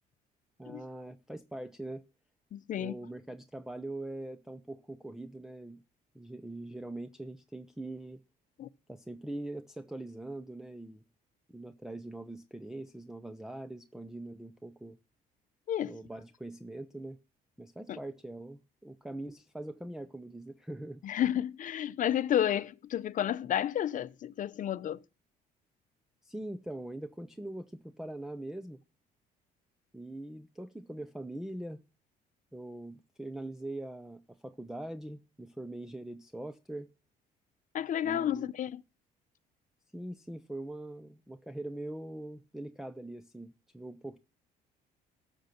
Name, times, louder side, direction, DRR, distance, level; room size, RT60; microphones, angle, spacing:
voice 1, 0.6-2.0 2.8-5.8 6.1-8.2 8.9-11.0 11.5-15.0 15.8-17.2 17.6-21.0 26.2-28.8 29.9-31.8 32.5-36.9 38.0-38.5 39.9-44.2, right 1 dB, 5° right, 0.7 m, -42 dB
voice 2, 2.5-3.0 8.6-8.7 15.7-16.0 17.9-18.0 21.0-25.0 37.7-38.8, left 10 dB, 50° left, 0.8 m, -31 dB
13.0 x 6.8 x 5.9 m
cardioid pair, 110°, 17 cm